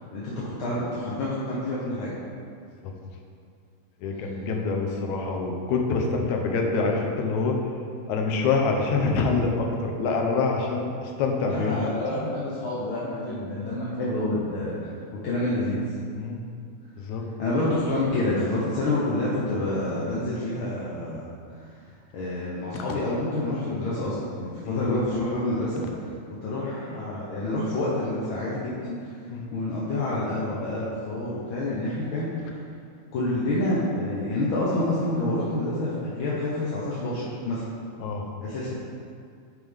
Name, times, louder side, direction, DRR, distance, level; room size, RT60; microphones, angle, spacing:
voice 1, 0.1-2.1 11.4-15.8 17.4-21.3 22.1-26.1 26.4-29.1 29.5-32.6 33.1-37.6 38.4-38.8, left 1 dB, 60° left, -8 dB, 1.4 m, -28 dB
voice 2, 4.0-7.6 8.1-11.9 16.2-16.4 17.0-17.2 22.7-22.8 24.6-24.8 29.3-29.5 38.0-38.3, left 4 dB, 80° left, 1 dB, 2.2 m, -26 dB
9.8 x 5.5 x 3.5 m, 2.3 s
omnidirectional pair, 3.4 m